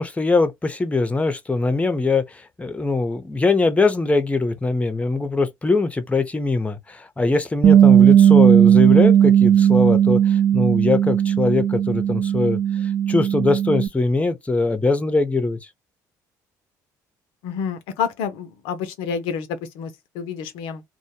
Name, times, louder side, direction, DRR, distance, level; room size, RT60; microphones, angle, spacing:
voice 1, 0.0-15.6, left 3 dB, 15° left, 0.5 m, -22 dB
Bass guitar, 7.6-13.9, right 9 dB, 50° right, 0.4 m, -15 dB
voice 2, 17.4-20.8, left 7 dB, 75° left, 0.5 m, -29 dB
2.1 x 2.0 x 2.8 m
hypercardioid pair, 60°, 9 cm